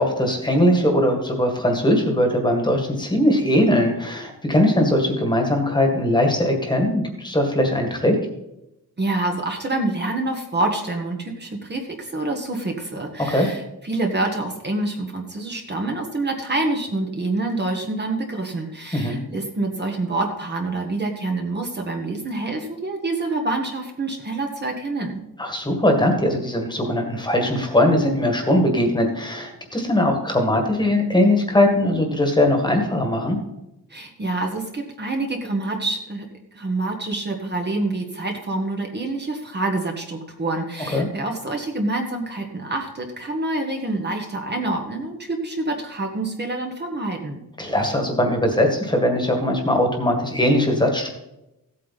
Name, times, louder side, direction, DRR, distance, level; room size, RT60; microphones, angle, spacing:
voice 1, 0.0-8.2 13.3-13.5 18.9-19.2 25.4-33.4 40.9-41.1 47.6-51.1, left 1 dB, 10° left, 3 dB, 1.8 m, -20 dB
voice 2, 9.0-25.2 33.9-36.3 36.5-47.4, right 2 dB, 30° right, 2 dB, 1.5 m, -27 dB
15.5 x 8.5 x 4.2 m, 0.90 s
wide cardioid pair, 170°, 36 cm